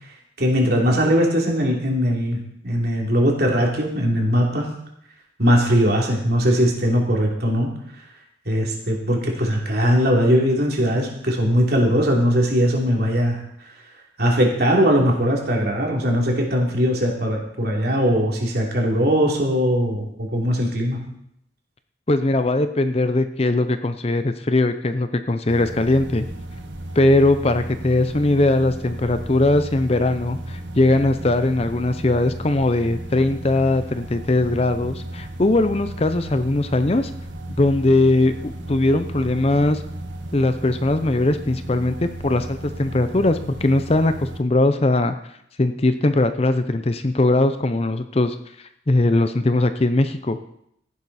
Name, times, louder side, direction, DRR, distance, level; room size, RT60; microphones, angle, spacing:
voice 1, 0.4-4.7 5.4-7.7 8.4-13.4 14.2-21.0, equal, 55° right, -1 dB, 3.2 m, -20 dB
voice 2, 22.1-26.3 27.0-37.1 37.6-39.8 40.3-45.1 45.6-48.4 48.9-50.4, left 2 dB, 30° left, 10 dB, 0.6 m, -20 dB
sound 1, 25.5-44.4, right 1 dB, 70° right, 1.5 m, -34 dB
15.0 x 11.0 x 4.3 m, 0.75 s
head